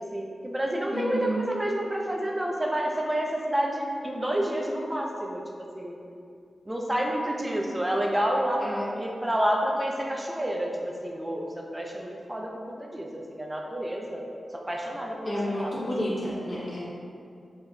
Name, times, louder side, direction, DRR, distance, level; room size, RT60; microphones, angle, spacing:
voice 1, 0.1-5.4 5.7-6.0 6.7-14.2 14.5-16.1, right 1 dB, 20° right, 0 dB, 0.5 m, -29 dB
voice 2, 0.9-1.5 8.6-8.9 15.2-16.8, equal, 50° left, -9 dB, 1.2 m, -30 dB
3.9 x 3.3 x 2.3 m, 2.5 s
cardioid pair, 45°, 0 cm